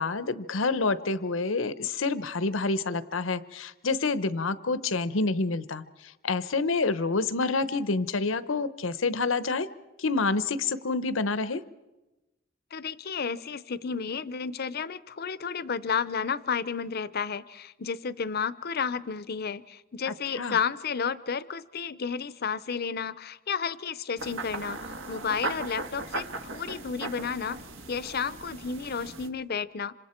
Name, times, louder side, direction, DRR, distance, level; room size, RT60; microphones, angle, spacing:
voice 1, 0.0-5.8 6.2-9.7 10.0-11.6 20.1-20.6, left 3 dB, 85° left, 14 dB, 0.9 m, -28 dB
voice 2, 12.7-27.6 27.9-29.9, left 6 dB, 55° left, 16 dB, 0.7 m, -32 dB
sound 1, 24.2-29.3, right 2 dB, 75° right, 1.5 m, -37 dB
26.5 x 26.0 x 4.4 m, 1.0 s
head